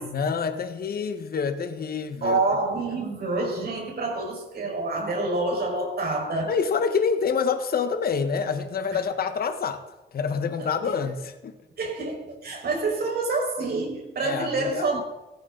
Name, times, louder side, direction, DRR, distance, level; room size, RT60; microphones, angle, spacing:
voice 1, 0.0-2.4 6.5-9.8 10.1-11.5 14.2-14.8, left 6 dB, 50° left, 1.4 m, -27 dB
voice 2, 2.2-6.6 8.9-9.0 10.6-10.9 11.8-15.0, right 3 dB, 55° right, 5.4 m, -27 dB
15.5 x 15.0 x 4.0 m
cardioid pair, 90°, 20 cm